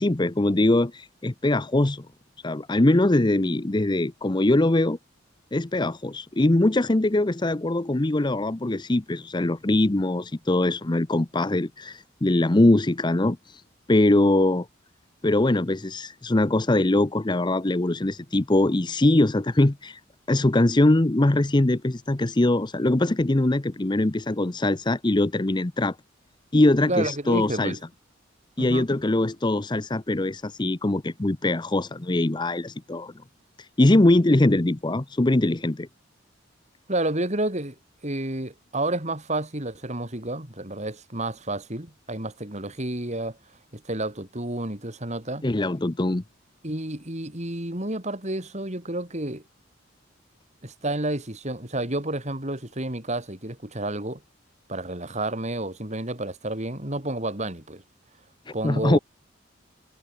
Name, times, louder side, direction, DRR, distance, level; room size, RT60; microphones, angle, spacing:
voice 1, 0.0-2.1 2.4-5.0 5.5-13.6 13.9-14.7 15.2-20.0 20.3-25.9 26.5-27.7 28.6-33.1 33.8-35.9 45.4-46.2 58.6-59.0, left 1 dB, 20° left, 0.7 m, -22 dB
voice 2, 26.9-27.8 28.6-28.9 36.9-37.8 38.0-43.4 43.7-45.5 46.6-49.4 50.6-54.2 54.7-57.8 58.5-59.0, right 1 dB, 35° right, 3.8 m, -30 dB
head